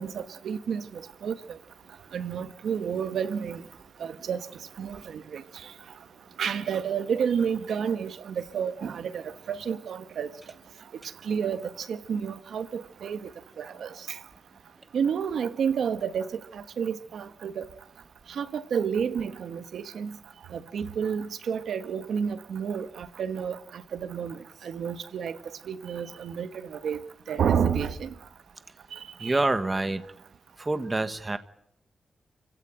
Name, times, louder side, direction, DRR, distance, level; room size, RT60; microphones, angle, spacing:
voice 1, 0.0-1.3 2.1-3.6 4.0-4.4 4.8-5.4 6.4-9.2 9.5-10.3 11.3-11.6 11.9-13.2 13.6-13.9 14.9-16.3 16.5-17.6 18.4-20.1 20.5-23.6 23.9-24.3 24.6-25.4 25.7-27.0 27.3-28.1 28.9-29.4, right 7 dB, 90° right, 1.4 m, -30 dB
voice 2, 29.2-30.0 30.6-31.4, right 2 dB, 20° right, 1.2 m, -26 dB
30.0 x 16.0 x 9.0 m
wide cardioid pair, 170°, 0 cm